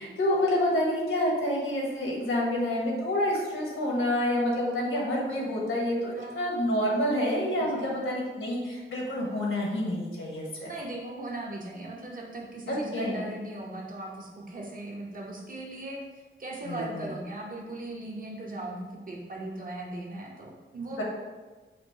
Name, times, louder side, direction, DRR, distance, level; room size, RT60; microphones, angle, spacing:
voice 1, 0.0-10.7 12.7-13.1 16.7-17.1 21.0-21.1, left 1 dB, 80° left, -2 dB, 1.1 m, -28 dB
voice 2, 6.2-6.9 7.6-8.0 10.6-21.0, right 1 dB, 40° right, -1 dB, 0.9 m, -38 dB
5.0 x 2.1 x 4.4 m, 1.3 s
wide cardioid pair, 105°, 21 cm